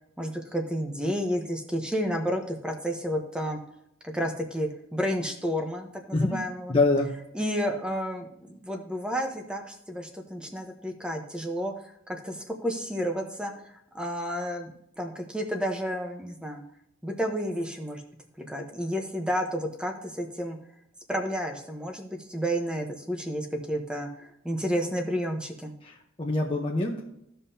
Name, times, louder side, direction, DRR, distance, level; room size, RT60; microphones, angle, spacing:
voice 1, 0.2-3.6 4.0-6.7 7.3-8.3 8.6-14.7 15.0-16.6 17.0-18.0 18.5-20.6 21.1-25.7, equal, 5° right, 3 dB, 0.9 m, -31 dB
voice 2, 6.1-6.4 6.7-7.1 25.8-27.2, left 2 dB, 25° left, -2 dB, 0.9 m, -25 dB
15.5 x 5.5 x 2.8 m, 0.77 s
head